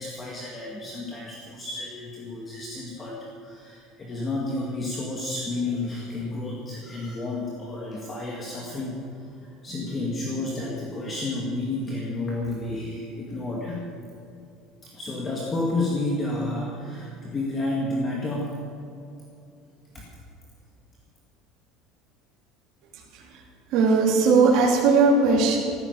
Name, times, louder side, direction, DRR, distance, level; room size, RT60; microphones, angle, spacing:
voice 1, 0.0-9.3 9.6-13.9 14.8-18.5 19.9-20.1, left 2 dB, 20° left, -3 dB, 2.0 m, -31 dB
voice 2, 22.9-23.4 23.7-25.6, right 4 dB, 50° right, -4 dB, 3.3 m, -19 dB
14.5 x 14.0 x 6.7 m, 2.7 s
cardioid pair, 165°, 0 cm